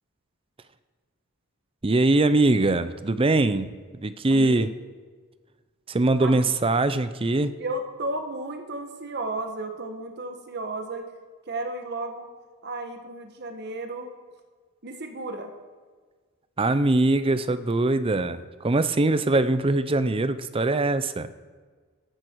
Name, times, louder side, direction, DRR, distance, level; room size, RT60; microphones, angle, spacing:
voice 1, 1.8-4.7 5.9-7.6 16.6-21.3, right 2 dB, 25° right, 13 dB, 0.5 m, -22 dB
voice 2, 4.3-4.7 6.2-6.4 7.6-11.1 11.5-12.3 12.6-14.1 14.8-15.5, right 2 dB, 50° right, 5 dB, 1.5 m, -33 dB
17.5 x 13.5 x 4.7 m, 1.5 s
head